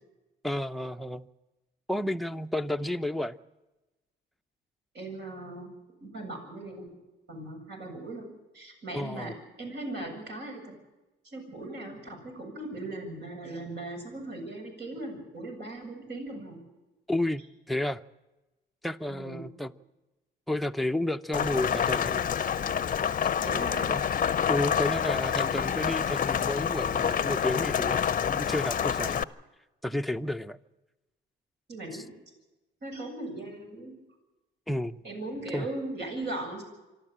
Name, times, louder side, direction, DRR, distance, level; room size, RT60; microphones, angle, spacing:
voice 1, 0.4-1.3 1.9-3.4 8.9-9.3 17.1-18.0 18.8-19.7 20.5-22.3 23.9-24.0 24.5-29.3 29.8-30.6 31.9-32.0 34.7-35.0 35.5-35.7, left 1 dB, ahead, 7 dB, 0.7 m, -31 dB
voice 2, 4.9-5.7 6.0-7.0 7.3-8.3 8.5-10.6 11.2-16.6 19.1-19.4 23.4-23.9 31.7-32.1 32.8-33.9 35.0-36.6, right 2 dB, 60° right, 2 dB, 7.9 m, -38 dB
Rain, 21.3-29.2, left 8 dB, 45° left, 0.7 m, -27 dB
26.0 x 12.0 x 8.8 m, 1.1 s
cardioid pair, 90°, 20 cm